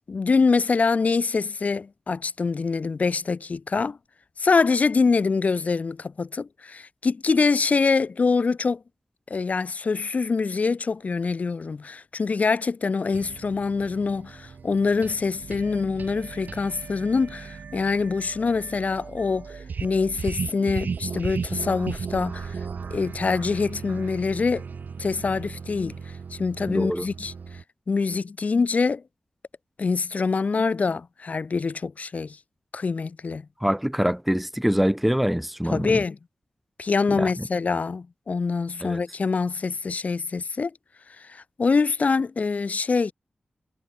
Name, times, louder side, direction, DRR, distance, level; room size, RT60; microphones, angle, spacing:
voice 1, 0.1-4.0 4.4-8.8 9.3-19.4 19.8-22.6 22.9-24.6 25.0-26.0 26.4-27.3 27.9-29.0 29.8-32.4 32.7-33.4 35.7-36.2 36.8-40.7 41.3-43.1, left 4 dB, 55° left, 1.5 m, -24 dB
sound 1, 13.1-27.6, right 5 dB, 80° right, 5.6 m, -36 dB
voice 2, 26.7-27.1 33.6-36.0 37.2-37.3 38.8-39.0, equal, 5° right, 1.3 m, -24 dB
wide cardioid pair, 110°, 3 cm